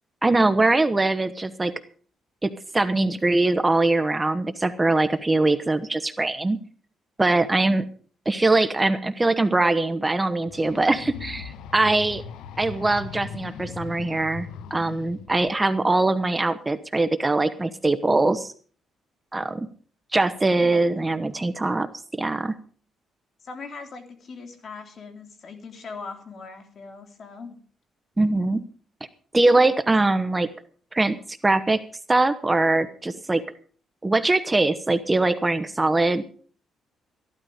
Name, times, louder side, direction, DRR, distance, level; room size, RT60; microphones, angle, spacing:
voice 1, 0.2-1.7 2.4-6.6 7.2-7.9 8.3-12.2 12.6-18.5 19.3-19.7 20.1-21.9 22.2-22.5 28.2-28.6 29.3-30.5 30.9-31.8 32.1-33.4 34.0-36.2, right 2 dB, 20° right, 11 dB, 1.0 m, -22 dB
sound 1, 10.5-15.5, left 6 dB, 85° left, 0.9 m, -39 dB
voice 2, 20.6-21.3 23.4-27.6, left 4 dB, 50° left, 5 dB, 3.2 m, -41 dB
14.5 x 12.0 x 5.0 m, 0.43 s
cardioid pair, 90°, 0 cm